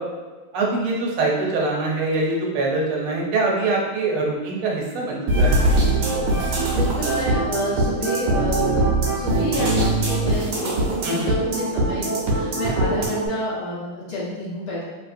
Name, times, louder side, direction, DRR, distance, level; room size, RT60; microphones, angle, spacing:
voice 1, 0.5-5.6 11.0-11.3, right 2 dB, 85° right, -2 dB, 1.6 m, -23 dB
sound 1, 5.3-13.3, right 2 dB, 65° right, 1.2 m, -21 dB
voice 2, 6.4-14.8, left 1 dB, 60° left, -9 dB, 1.5 m, -29 dB
3.3 x 3.1 x 2.5 m, 1.3 s
omnidirectional pair, 2.3 m